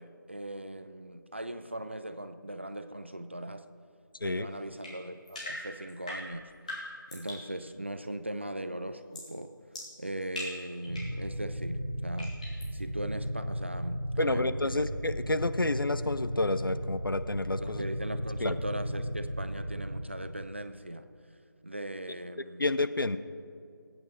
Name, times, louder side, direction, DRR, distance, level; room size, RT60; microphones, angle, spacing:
voice 1, 0.0-3.7 4.2-9.5 10.0-12.4 12.7-14.9 17.6-21.1 21.6-22.7, right 1 dB, 30° right, 11 dB, 0.4 m, -39 dB
sound 1, 4.8-7.5 9.1-9.4 9.7-11.2 12.2-12.7, left 1 dB, 20° left, 2.1 m, -41 dB
sound 2, 10.9-20.0, equal, 75° right, 1.3 m, -35 dB
voice 2, 14.2-17.8 18.4-18.6 22.6-23.2, left 2 dB, 75° left, 12 dB, 0.7 m, -29 dB
20.0 x 8.8 x 3.8 m, 2.4 s
figure-of-eight pair, 165°, 12 cm